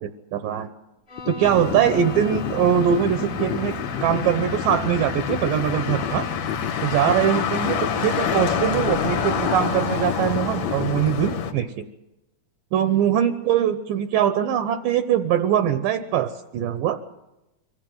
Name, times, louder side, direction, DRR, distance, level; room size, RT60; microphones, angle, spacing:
voice 1, 0.0-0.7 1.3-3.8 4.0-6.3 6.8-11.9 12.7-17.0, right 9 dB, 70° right, 10 dB, 2.3 m, -22 dB
Bowed string instrument, 1.1-6.6, left 2 dB, 30° left, 1.0 m, -40 dB
sound 1, 1.2-11.2, left 9 dB, 70° left, 1.7 m, -31 dB
Motor vehicle (road), 1.4-11.5, left 7 dB, 55° left, 2.2 m, -28 dB
25.0 x 15.0 x 9.3 m, 0.94 s
omnidirectional pair, 4.5 m